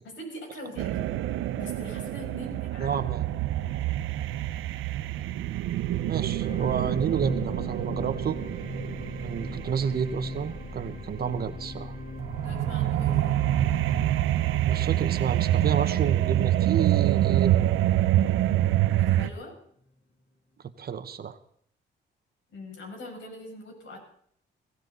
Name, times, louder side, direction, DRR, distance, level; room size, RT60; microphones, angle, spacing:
voice 1, 0.0-1.1 1.6-3.4 12.4-13.4 19.0-19.5 22.5-24.0, left 1 dB, 70° left, 1 dB, 7.1 m, -42 dB
sound 1, 0.8-10.7 12.2-19.3, right 13 dB, 85° right, 0.9 m, -26 dB
voice 2, 2.8-3.2 6.0-8.4 9.2-11.9 14.6-17.5 20.8-21.4, right 7 dB, 50° right, 10 dB, 1.3 m, -30 dB
sound 2, 6.4-18.8 19.4-19.5, left 1 dB, 45° left, 4.8 m, -39 dB
22.0 x 16.0 x 4.1 m, 0.64 s
cardioid pair, 90°, 20 cm